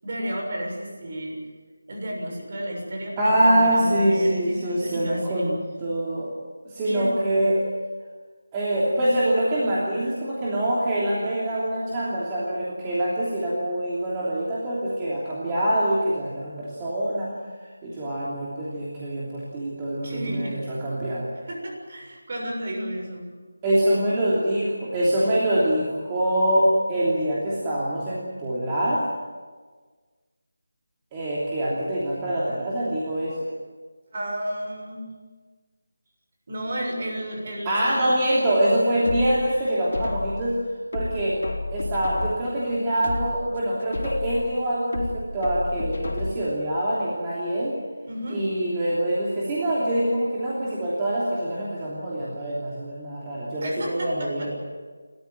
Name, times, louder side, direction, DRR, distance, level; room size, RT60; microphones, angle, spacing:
voice 1, 0.0-1.4 1.9-5.5 6.8-7.5 20.0-20.6 21.5-23.3 34.1-35.1 36.5-38.2 48.1-48.4 53.6-54.5, equal, 35° right, 0 dB, 6.8 m, -32 dB
voice 2, 3.2-6.3 6.6-7.6 8.5-17.3 17.8-21.3 23.6-29.0 31.1-33.4 37.6-40.5 40.9-41.4 41.7-47.8 48.3-54.5, right 1 dB, 15° right, -7 dB, 3.0 m, -24 dB
sound 1, 39.0-40.5 40.9-42.5 42.9-44.5 44.9-46.5 46.9-47.0, left 3 dB, 55° left, 4.1 m, -31 dB
29.5 x 14.0 x 9.3 m, 1.5 s
figure-of-eight pair, 175°, 0 cm